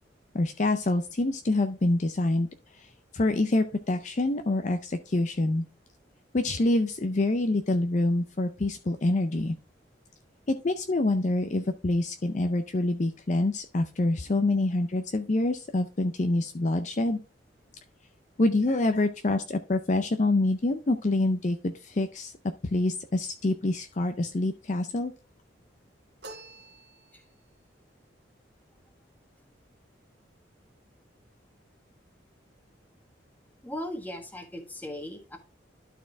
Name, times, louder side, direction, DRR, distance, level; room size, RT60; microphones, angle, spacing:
voice 1, 0.3-2.5 3.1-5.6 6.3-9.5 10.5-17.2 18.4-22.3 22.7-25.1, left 2 dB, 40° left, 7 dB, 0.5 m, -26 dB
sound 1, 26.2-27.5, right 2 dB, 65° right, 1.8 m, -47 dB
voice 2, 33.6-35.4, left 1 dB, 10° left, 4 dB, 1.4 m, -38 dB
12.0 x 4.3 x 3.4 m, 0.35 s
head